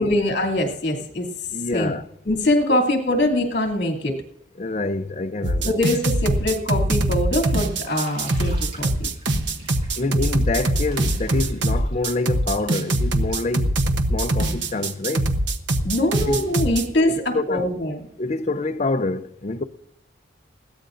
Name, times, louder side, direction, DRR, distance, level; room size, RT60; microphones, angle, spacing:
voice 1, 0.0-1.9 2.2-4.2 5.6-9.1 15.8-18.0, left 1 dB, 60° left, 2.7 m, -23 dB
voice 2, 1.5-2.1 2.7-2.8 4.6-5.8 10.0-13.8 14.1-15.3 16.3-16.5 17.1-17.7 18.2-19.6, left 3 dB, 35° left, 0.6 m, -26 dB
sound 1, 5.4-16.8, right 1 dB, 65° right, 1.0 m, -22 dB
Bathtub (filling or washing), 7.8-13.5, right 2 dB, 30° right, 4.3 m, -45 dB
20.5 x 16.0 x 2.6 m
head